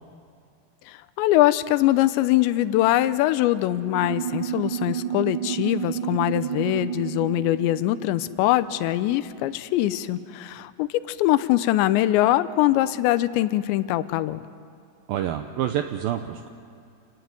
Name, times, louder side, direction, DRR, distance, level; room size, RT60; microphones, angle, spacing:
voice 1, 0.9-14.4, left 15 dB, 80° left, 13 dB, 2.9 m, -22 dB
sound 1, 3.7-9.7, right 11 dB, 55° right, 1.2 m, -31 dB
voice 2, 15.1-16.5, right 10 dB, 85° right, 7 dB, 2.1 m, -27 dB
28.0 x 15.5 x 9.7 m, 2.5 s
omnidirectional pair, 5.2 m